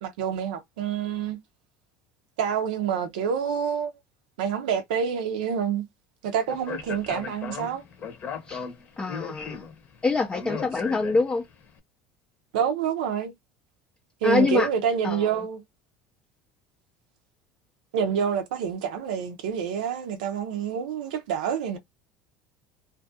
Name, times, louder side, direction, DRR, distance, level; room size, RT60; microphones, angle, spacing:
voice 1, 0.0-1.4 2.4-3.9 4.4-5.8 6.2-7.8 12.5-13.3 14.2-15.6 17.9-21.8, right 7 dB, 90° right, 0.4 m, -27 dB
Speech, 6.5-11.5, left 6 dB, 45° left, 0.8 m, -37 dB
voice 2, 9.0-9.6 10.0-11.4 14.2-14.7 15.0-15.4, left 3 dB, 20° left, 0.4 m, -25 dB
2.5 x 2.3 x 2.6 m
supercardioid pair, 105°, 4 cm